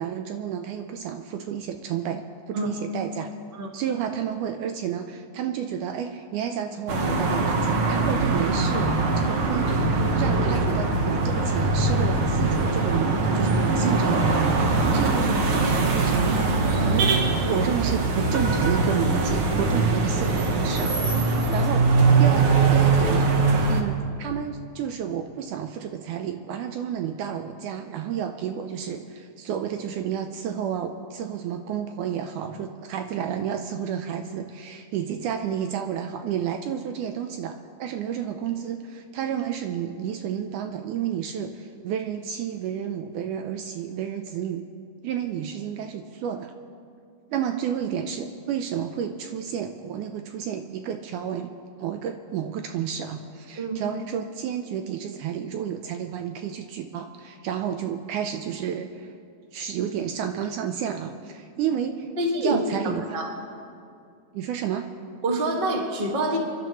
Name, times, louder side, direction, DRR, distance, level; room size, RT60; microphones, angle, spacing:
voice 1, 0.0-3.3 3.7-16.6 16.9-17.2 17.5-23.4 23.7-44.6 45.0-46.5 47.3-51.5 51.8-59.1 59.5-62.1 62.4-63.2 64.3-64.9, right 8 dB, 80° right, 6 dB, 1.9 m, -31 dB
sound 1, 6.9-23.8, right 3 dB, 60° right, 1.4 m, -22 dB
voice 2, 62.2-63.3 65.2-66.4, right 1 dB, 35° right, 0 dB, 0.9 m, -26 dB
28.0 x 12.0 x 3.0 m, 2.4 s
omnidirectional pair, 4.0 m